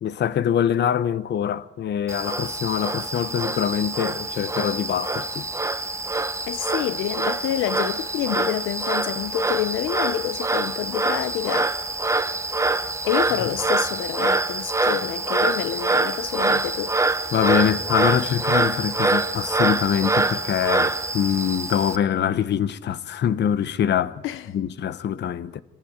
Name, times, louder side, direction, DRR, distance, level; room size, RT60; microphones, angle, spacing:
voice 1, 0.0-5.5 14.8-15.0 17.3-25.6, left 9 dB, 60° left, 1.0 m, -24 dB
Frog, 2.1-22.0, right 3 dB, 15° right, 1.1 m, -25 dB
voice 2, 6.5-11.7 13.1-16.9 24.2-24.5, left 12 dB, 90° left, 0.8 m, -28 dB
27.0 x 14.5 x 8.8 m
cardioid pair, 90°, 20 cm